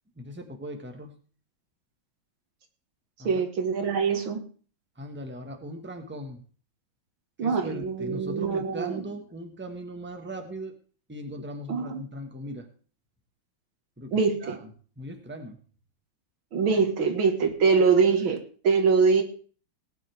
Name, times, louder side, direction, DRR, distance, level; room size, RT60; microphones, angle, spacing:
voice 1, 0.2-1.1 3.2-3.4 5.0-6.4 7.4-10.7 11.1-12.7 14.0-14.1 14.4-14.7 15.0-15.6, equal, 5° right, 5 dB, 1.4 m, -39 dB
voice 2, 3.2-4.4 7.4-9.0 11.7-12.1 14.1-14.6 16.5-19.2, right 5 dB, 90° right, 6 dB, 2.6 m, -24 dB
18.5 x 9.9 x 3.5 m, 0.41 s
omnidirectional pair, 2.1 m